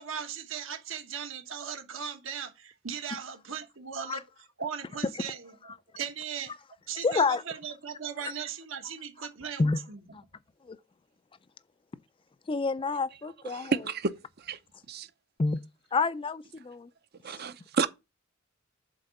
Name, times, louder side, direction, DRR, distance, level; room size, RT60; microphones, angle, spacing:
voice 1, 0.0-6.5 6.9-10.0, right 7 dB, 70° right, 1.4 m, -38 dB
voice 2, 7.0-7.4 9.6-9.8 10.7-10.8 12.5-13.7 15.4-15.6 15.9-16.9, left 4 dB, 25° left, 0.4 m, -28 dB
voice 3, 13.4-14.6 14.9-15.1 17.2-17.9, right 4 dB, 50° right, 0.7 m, -31 dB
7.5 x 3.9 x 6.4 m
head